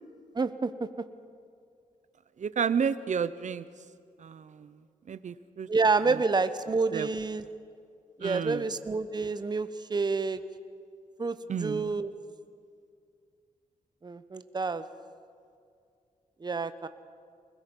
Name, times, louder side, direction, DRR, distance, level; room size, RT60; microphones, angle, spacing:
voice 1, 0.3-0.7 5.7-7.5 8.2-10.4 11.2-12.1 14.0-14.8 16.4-16.9, right 4 dB, 30° right, 11 dB, 1.0 m, -28 dB
voice 2, 2.4-3.6 4.2-4.7 5.1-5.7 6.9-7.1 8.2-8.6 11.5-11.9, right 7 dB, 60° right, 15 dB, 0.9 m, -31 dB
24.0 x 20.5 x 5.5 m, 2.3 s
cardioid pair, 65°, 14 cm